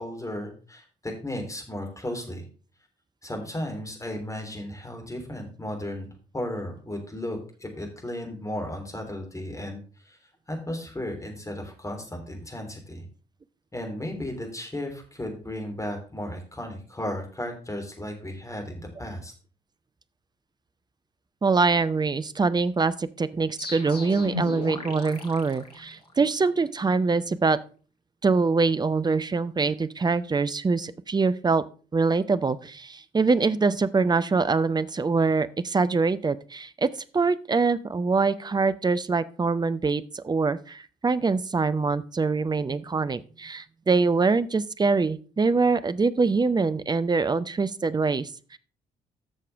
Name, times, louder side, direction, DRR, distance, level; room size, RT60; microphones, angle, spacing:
voice 1, 0.0-2.4 3.2-10.2 10.5-13.1 13.7-19.3, left 1 dB, 15° left, 2 dB, 3.3 m, -35 dB
voice 2, 21.4-27.6 28.2-31.6 31.9-48.6, right 4 dB, 20° right, 14 dB, 0.6 m, -24 dB
sound 1, 23.6-26.4, left 1 dB, 85° left, 1.0 m, -36 dB
11.5 x 6.6 x 3.4 m, 0.38 s
figure-of-eight pair, 40°, 20 cm